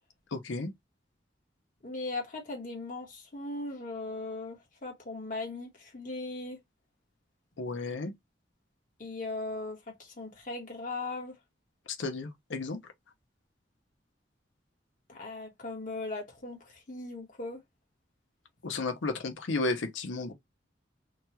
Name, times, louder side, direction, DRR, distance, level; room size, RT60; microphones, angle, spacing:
voice 1, 0.3-0.7 7.6-8.1 11.9-12.8 18.6-20.3, left 3 dB, 85° left, 0.6 m, -33 dB
voice 2, 1.8-6.6 9.0-11.4 15.1-17.6, left 2 dB, 45° left, 1.2 m, -38 dB
2.9 x 2.3 x 2.8 m
head